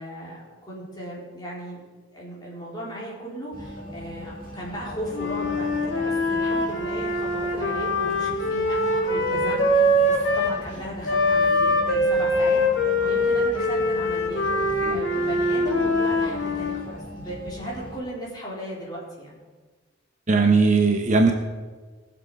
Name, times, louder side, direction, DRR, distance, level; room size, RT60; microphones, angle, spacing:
voice 1, 0.0-1.8 2.1-19.4, equal, 20° left, -5 dB, 4.1 m, -36 dB
sound 1, 3.5-18.0, equal, 50° left, 2.3 m, -39 dB
Wind instrument woodwind instrument, 5.1-10.6 11.0-16.9, left 1 dB, 75° left, 2.2 m, -23 dB
voice 2, 20.3-21.3, right 4 dB, 40° right, 4 dB, 1.0 m, -19 dB
20.5 x 7.2 x 4.9 m, 1.4 s
head